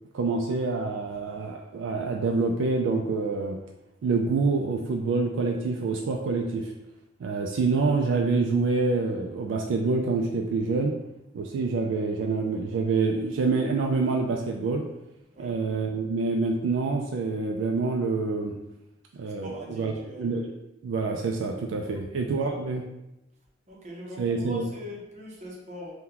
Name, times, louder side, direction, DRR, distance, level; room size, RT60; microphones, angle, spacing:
voice 1, 0.1-3.6 4.0-6.7 7.2-11.0 11.3-14.9 15.4-18.6 19.1-20.5 20.8-22.8 24.2-24.6, right 4 dB, 75° right, 2 dB, 0.3 m, -26 dB
voice 2, 19.2-20.3 21.9-22.0 22.6-22.7 23.7-25.9, left 1 dB, 40° right, -2 dB, 0.7 m, -41 dB
3.7 x 2.2 x 2.8 m, 0.92 s
head